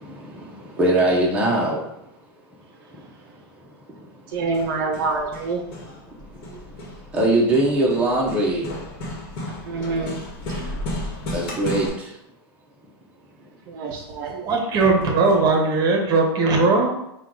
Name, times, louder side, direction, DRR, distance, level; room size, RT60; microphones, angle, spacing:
voice 1, 0.0-1.8 7.1-8.7 11.3-12.1, right 1 dB, 10° right, -4 dB, 0.7 m, -21 dB
Hammer, 4.3-11.9, left 1 dB, 45° left, 1.2 m, -34 dB
voice 2, 4.3-5.6 6.5-6.7 9.6-10.2 10.5-10.7 13.7-14.4, right 3 dB, 55° right, 2 dB, 0.6 m, -27 dB
voice 3, 14.3-16.9, right 3 dB, 30° right, 1 dB, 1.0 m, -19 dB
4.4 x 2.3 x 3.7 m, 0.84 s
supercardioid pair, 140°, 13 cm